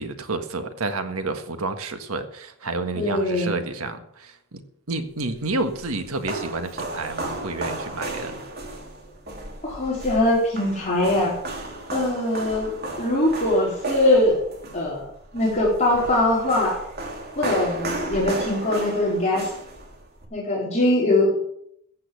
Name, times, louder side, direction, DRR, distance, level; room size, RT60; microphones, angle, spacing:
voice 1, 0.0-4.6 4.9-8.4, right 3 dB, 85° right, 8 dB, 1.6 m, -30 dB
voice 2, 3.0-3.6 9.6-11.3 11.9-14.4 14.7-15.0 15.3-16.8 17.4-19.5 20.3-21.4, left 1 dB, 35° left, -5 dB, 4.2 m, -22 dB
sound 1, 5.2-20.3, right 2 dB, 50° right, 3.0 m, -34 dB
15.0 x 8.6 x 7.0 m, 0.72 s
head